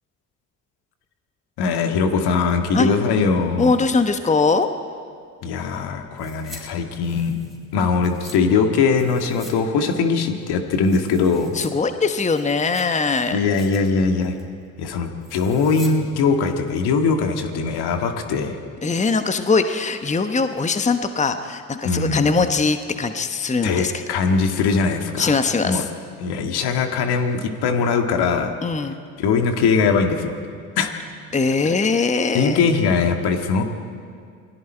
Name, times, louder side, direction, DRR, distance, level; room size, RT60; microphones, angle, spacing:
voice 1, 1.6-3.7 5.4-7.4 7.7-11.5 13.3-14.4 14.8-18.6 21.8-22.4 23.6-25.4 25.6-25.9 26.2-28.5 29.2-30.4 30.8-30.9 32.3-33.6, left 5 dB, 60° left, 5 dB, 2.0 m, -21 dB
voice 2, 3.6-4.7 11.5-13.4 18.8-23.9 25.2-25.9 28.6-29.0 31.3-32.6, left 4 dB, 15° left, 8 dB, 1.1 m, -21 dB
sound 1, 6.2-6.6 6.9-8.4 9.0-9.6 9.8-9.9 10.4-11.7 12.1-13.0 13.4-13.9 14.2-14.5 15.2-16.0 16.2-16.3, right 1 dB, ahead, 5.6 m, -44 dB
28.0 x 20.5 x 4.5 m, 2.2 s
hypercardioid pair, 55°, 43 cm